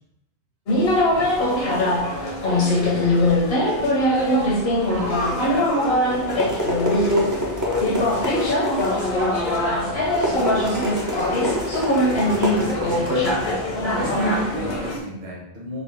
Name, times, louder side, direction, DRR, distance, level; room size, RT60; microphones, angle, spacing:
sound 1, 0.7-15.0, left 1 dB, 65° left, 1.1 m, -22 dB
voice 1, 1.1-2.0 2.3-4.4 4.8-8.4 8.9-10.0, right 1 dB, 70° right, -5 dB, 1.0 m, -38 dB
sound 2, 5.9-14.8, equal, 25° right, 0.5 m, -29 dB
voice 2, 12.0-13.6 14.0-15.8, equal, 45° right, -4 dB, 1.1 m, -34 dB
3.8 x 2.4 x 3.5 m, 0.80 s
omnidirectional pair, 1.2 m